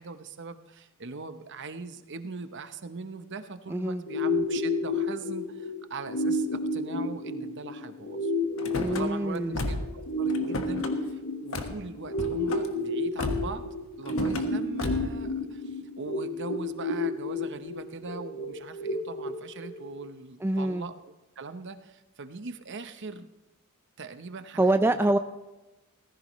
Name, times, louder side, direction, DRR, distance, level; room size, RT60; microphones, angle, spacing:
voice 1, 0.0-8.3 8.9-13.6 14.0-23.3 24.0-25.0, right 4 dB, 55° right, 10 dB, 0.9 m, -41 dB
voice 2, 3.7-4.0 8.8-9.7 20.4-20.8 24.6-25.2, right 2 dB, 10° right, 8 dB, 0.3 m, -25 dB
sound 1, 4.1-20.1, left 2 dB, 85° left, 1.6 m, -31 dB
Car / Slam, 8.6-9.0 9.5-10.0 10.3-10.9 11.5-11.7 12.1-12.7 13.2-13.6 14.0-14.5 14.8-15.2, left 2 dB, 65° left, 1.4 m, -33 dB
18.0 x 15.0 x 3.1 m, 1.1 s
head